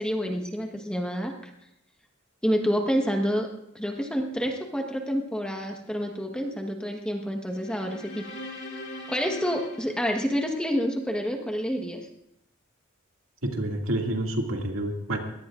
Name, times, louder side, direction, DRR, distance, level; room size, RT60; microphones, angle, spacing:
voice 1, 0.0-1.5 2.4-3.5 3.7-8.3 9.1-12.1, equal, 5° left, 2 dB, 1.2 m, -28 dB
sound 1, 7.5-10.9, left 1 dB, 55° left, 3.1 m, -41 dB
voice 2, 13.4-15.2, right 1 dB, 75° right, 1 dB, 2.3 m, -28 dB
22.0 x 18.0 x 2.5 m, 0.82 s
head